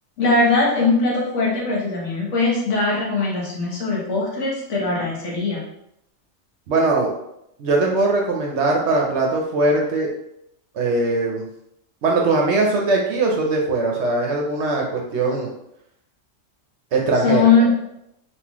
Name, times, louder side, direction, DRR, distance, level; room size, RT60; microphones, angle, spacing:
voice 1, 0.2-5.7 17.2-17.7, left 3 dB, 65° left, -3 dB, 1.2 m, -20 dB
voice 2, 6.7-7.1 7.6-10.1 10.7-11.5 12.0-15.5 16.9-17.4, right 2 dB, 65° right, -1 dB, 0.8 m, -20 dB
3.6 x 2.4 x 2.9 m, 0.78 s
omnidirectional pair, 1.4 m